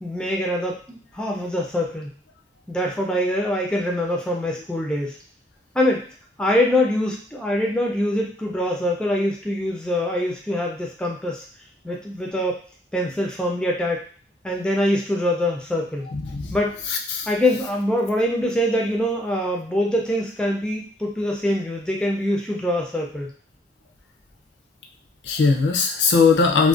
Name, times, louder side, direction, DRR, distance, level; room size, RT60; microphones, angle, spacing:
voice 1, 0.0-2.1 2.7-5.2 5.7-6.1 6.4-11.4 11.8-12.6 12.9-14.0 14.4-16.1 16.5-16.8 17.3-23.3, left 1 dB, 5° left, -1 dB, 0.3 m, -24 dB
voice 2, 16.1-16.6 16.9-17.3 25.2-26.7, left 4 dB, 80° left, 3 dB, 0.4 m, -19 dB
2.4 x 2.1 x 2.4 m, 0.43 s
head